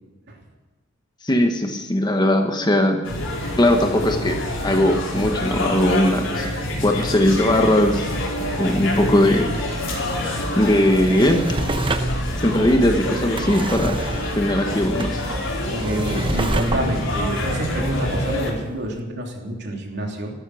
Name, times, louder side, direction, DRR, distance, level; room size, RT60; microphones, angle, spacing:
voice 1, 1.2-3.0 3.6-6.5 6.8-8.1 8.6-9.5 10.5-11.4 12.4-14.0 14.3-15.2, left 1 dB, 20° left, 4 dB, 1.2 m, -19 dB
sound 1, 3.0-18.5, left 1 dB, 65° left, 4.6 m, -26 dB
Drawer open or close, 10.8-18.5 19.0-19.1, right 2 dB, 25° right, 1.0 m, -30 dB
voice 2, 15.7-20.3, right 1 dB, 60° right, 1 dB, 3.3 m, -27 dB
15.0 x 13.5 x 6.2 m, 1.2 s
head